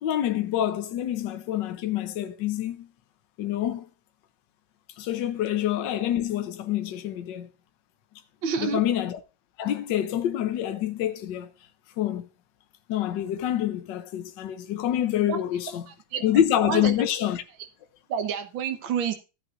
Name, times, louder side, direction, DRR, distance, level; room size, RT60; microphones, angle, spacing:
voice 1, 0.0-2.9 3.4-3.9 5.0-7.5 8.6-9.2 9.6-11.5 12.0-12.3 12.9-15.8 16.2-17.4, left 11 dB, 70° left, 1.4 m, -26 dB
voice 2, 8.4-8.8 15.3-15.4 15.9-16.2 16.6-16.9 18.1-19.1, right 7 dB, 75° right, 1.9 m, -28 dB
15.0 x 8.9 x 2.5 m
omnidirectional pair, 2.1 m